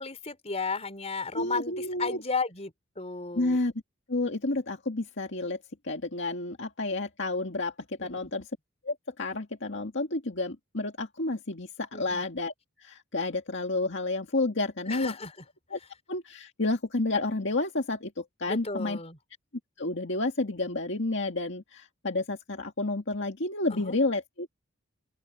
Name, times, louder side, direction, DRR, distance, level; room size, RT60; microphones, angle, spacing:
voice 1, 0.0-3.6 8.0-8.3 11.9-12.2 14.9-15.3 18.5-19.2 23.7-24.0, left 4 dB, 30° left, 4.3 m, -34 dB
voice 2, 1.3-2.2 3.4-3.7 4.1-5.6 5.8-7.7 8.0-8.4 8.9-12.5 12.8-15.1 15.7-15.8 16.1-19.0 19.8-24.5, left 2 dB, 55° left, 2.0 m, -30 dB
open air
head